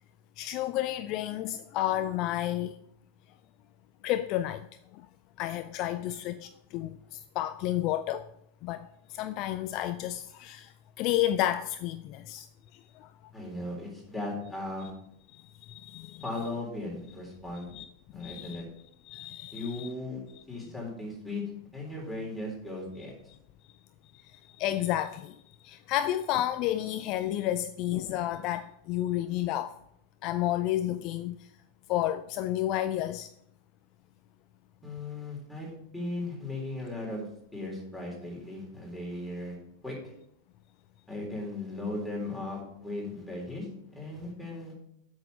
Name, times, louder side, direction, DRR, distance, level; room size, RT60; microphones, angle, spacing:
voice 1, 0.4-2.8 4.0-4.7 4.9-5.1 5.4-8.3 8.6-12.5 12.7-13.1 15.3-16.2 17.7-17.8 18.1-18.6 19.0-19.9 24.1-29.8 30.2-31.5 31.9-33.3, left 13 dB, 40° left, 0.3 m, -31 dB
voice 2, 13.3-14.9 16.2-17.7 18.1-18.7 19.5-20.2 20.5-21.4 21.7-23.1 34.8-37.3 37.5-39.6 39.8-40.1 41.1-44.7, left 2 dB, ahead, 3.8 m, -37 dB
8.0 x 6.4 x 5.2 m
figure-of-eight pair, 90°, 0 cm